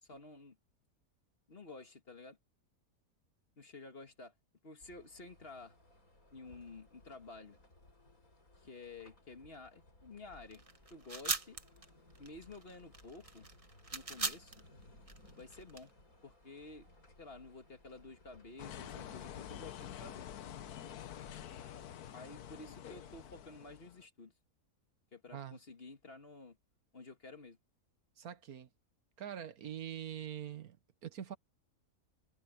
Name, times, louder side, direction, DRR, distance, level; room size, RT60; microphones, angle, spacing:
voice 1, 0.0-0.6 1.5-2.4 3.6-4.3 4.6-5.8 6.3-7.6 8.6-10.6 10.9-11.6 12.2-13.5 13.9-14.5 15.4-15.9 16.2-16.9 17.2-20.3 22.1-24.3 25.1-26.6 26.9-27.6, left 3 dB, 40° left, 2.0 m, -51 dB
sound 1, 4.8-23.4, left 1 dB, 65° left, 7.1 m, -62 dB
sound 2, 10.5-15.8, right 3 dB, 25° right, 1.3 m, -40 dB
sound 3, 18.6-24.0, left 10 dB, 85° left, 1.4 m, -48 dB
voice 2, 28.2-28.7 29.2-30.8 31.0-31.4, right 10 dB, 75° right, 1.6 m, -44 dB
omnidirectional pair, 1.6 m